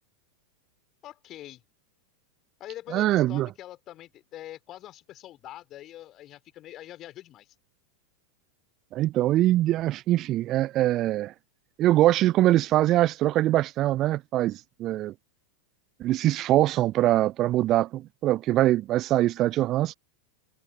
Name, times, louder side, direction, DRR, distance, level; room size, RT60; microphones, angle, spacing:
voice 1, 1.0-1.6 2.6-7.5, left 13 dB, 35° left, 3.3 m, -44 dB
voice 2, 2.9-3.5 8.9-11.3 11.8-15.1 16.0-20.0, right 15 dB, 35° right, 0.3 m, -23 dB
figure-of-eight pair, 90°, 0 cm